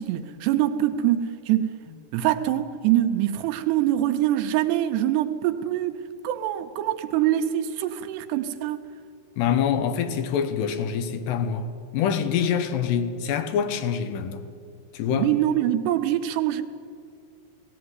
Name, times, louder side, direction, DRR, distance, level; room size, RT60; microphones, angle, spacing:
voice 1, 0.0-1.7 2.1-6.0 6.2-8.8 15.1-16.6, right 12 dB, 80° right, 2.9 m, -24 dB
voice 2, 9.4-11.7 11.9-14.4 14.9-15.3, left 8 dB, 75° left, 3.1 m, -25 dB
17.5 x 17.0 x 9.5 m
omnidirectional pair, 5.1 m